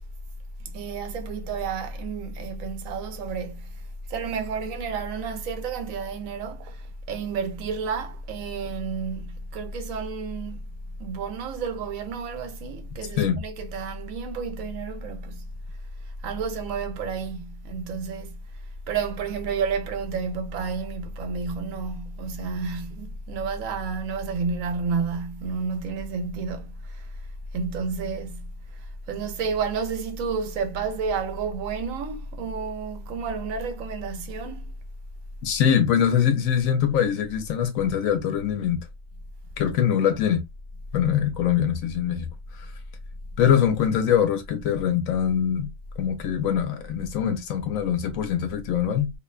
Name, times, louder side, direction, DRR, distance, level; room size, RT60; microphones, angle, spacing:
voice 1, 0.6-3.8 4.1-10.7 11.0-15.4 16.1-18.4 18.9-27.1 27.5-34.7, right 5 dB, 85° right, 1.0 m, -31 dB
voice 2, 35.4-38.8 39.6-40.4 40.9-42.3 42.5-42.7 43.4-45.7 46.0-49.1, left 8 dB, 90° left, 1.0 m, -23 dB
2.8 x 2.1 x 2.3 m
omnidirectional pair, 1.4 m